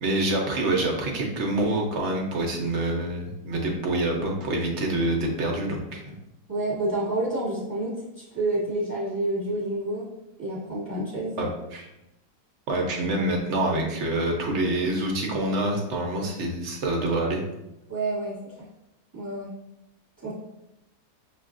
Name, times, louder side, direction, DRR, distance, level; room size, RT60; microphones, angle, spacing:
voice 1, 0.0-6.1 11.4-11.9 12.7-17.4, right 1 dB, 55° right, 1 dB, 0.8 m, -26 dB
voice 2, 6.5-10.1 10.4-11.4 17.9-18.7 19.1-19.5 20.2-20.3, right 2 dB, 10° right, -9 dB, 1.1 m, -29 dB
6.4 x 2.4 x 2.5 m, 0.89 s
omnidirectional pair, 1.7 m